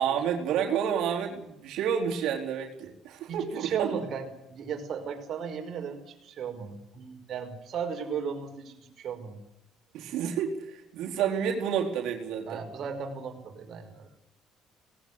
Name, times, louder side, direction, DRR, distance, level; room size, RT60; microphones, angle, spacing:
voice 1, 0.0-4.0 9.9-12.6, right 8 dB, 75° right, 1 dB, 4.0 m, -29 dB
voice 2, 3.3-9.4 12.5-14.1, right 6 dB, 55° right, 5 dB, 5.3 m, -36 dB
19.0 x 18.0 x 9.7 m, 0.86 s
cardioid pair, 110°, 0 cm